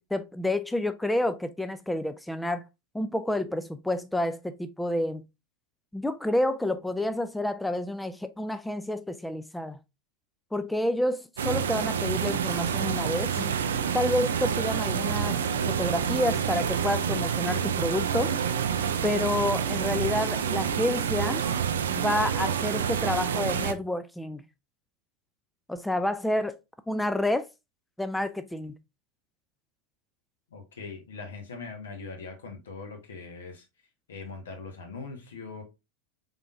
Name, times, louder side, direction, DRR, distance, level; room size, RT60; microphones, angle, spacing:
voice 1, 0.0-2.6 2.9-5.2 5.9-9.8 10.5-13.5 13.9-15.4 15.7-18.3 19.0-21.4 21.9-24.4 25.7-26.6 26.9-27.5 28.0-28.8, left 1 dB, 5° left, 0.3 m, -29 dB
sound 1, 11.4-23.7, right 7 dB, 75° right, 0.4 m, -28 dB
voice 2, 30.5-33.6 34.1-35.6, left 4 dB, 75° left, 1.1 m, -41 dB
3.9 x 3.5 x 2.5 m
figure-of-eight pair, 85°, 0 cm